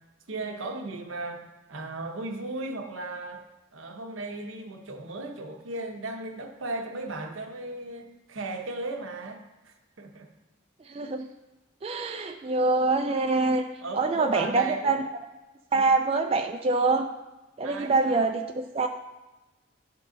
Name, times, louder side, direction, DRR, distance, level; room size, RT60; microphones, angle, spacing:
voice 1, 0.3-1.4 1.7-3.4 3.7-10.3 12.0-12.2 13.8-15.0 15.7-15.9 17.6-18.3, right 2 dB, 85° right, 3 dB, 0.9 m, -36 dB
voice 2, 10.9-11.3 11.8-13.6 13.9-15.0 15.7-17.1 17.6-18.9, right 3 dB, 30° right, 4 dB, 0.3 m, -25 dB
10.5 x 3.8 x 3.9 m, 1.1 s
head